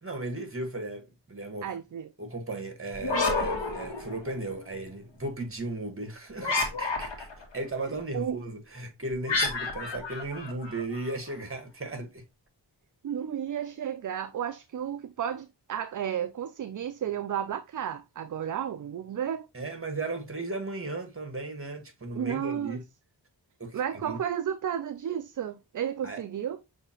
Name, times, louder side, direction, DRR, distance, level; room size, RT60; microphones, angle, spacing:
voice 1, 0.0-1.7 2.2-7.3 7.5-12.2 19.5-22.8 23.6-24.2 26.0-26.2, right 2 dB, 30° right, 1.5 m, -36 dB
voice 2, 1.6-2.1 8.1-8.4 13.0-19.5 22.1-22.8 23.7-26.6, right 9 dB, 45° right, 0.4 m, -32 dB
sound 1, 2.9-4.5 6.4-7.4 9.3-11.1, left 3 dB, 80° left, 1.5 m, -30 dB
6.5 x 2.8 x 2.9 m
cardioid pair, 55°, 44 cm